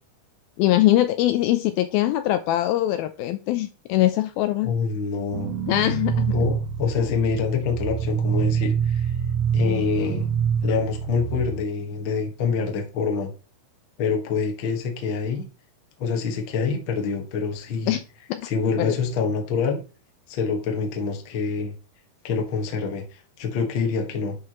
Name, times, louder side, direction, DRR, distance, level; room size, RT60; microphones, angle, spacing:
voice 1, 0.6-4.7 5.7-6.4 17.9-18.0 18.3-18.5 18.8-19.0, left 14 dB, 80° left, 2.2 m, -22 dB
voice 2, 4.6-5.5 6.3-9.1 9.5-10.3 10.6-13.3 14.0-15.5 16.0-18.0 18.4-19.8 20.3-21.7 22.2-24.4, left 5 dB, 55° left, 1.3 m, -26 dB
sound 1, 5.3-11.5, right 7 dB, 85° right, 1.7 m, -26 dB
10.5 x 4.8 x 3.0 m
omnidirectional pair, 4.6 m